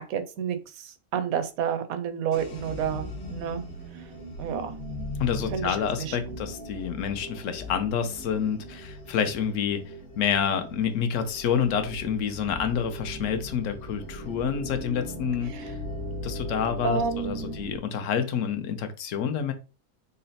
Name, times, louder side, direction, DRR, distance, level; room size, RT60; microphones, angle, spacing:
voice 1, 0.0-3.6 4.4-4.7 5.5-6.2 15.5-15.6 16.8-17.6, right 7 dB, 75° right, 9 dB, 1.0 m, -30 dB
sound 1, 2.3-17.8, left 1 dB, 40° left, 1.1 m, -39 dB
voice 2, 5.2-15.5 16.2-19.5, left 7 dB, 65° left, 8 dB, 0.9 m, -28 dB
4.0 x 2.1 x 3.9 m, 0.33 s
omnidirectional pair, 1.6 m